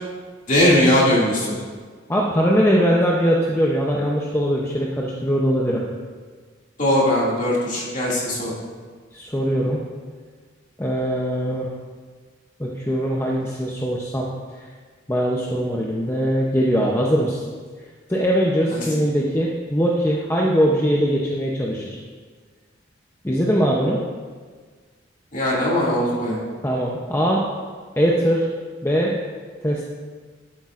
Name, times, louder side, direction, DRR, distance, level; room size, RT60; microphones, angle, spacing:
voice 1, 0.5-1.6 6.8-8.5 18.7-18.8 25.3-26.4, left 1 dB, 40° left, -5 dB, 2.3 m, -19 dB
voice 2, 2.1-5.8 9.1-9.8 10.8-11.7 12.6-14.3 14.6-14.7 15.1-17.4 18.1-22.0 23.2-24.0 26.6-27.4 28.0-28.5 28.8-29.1 29.6-29.8, equal, 15° left, -3 dB, 0.6 m, -21 dB
12.0 x 8.4 x 2.5 m, 1.5 s
head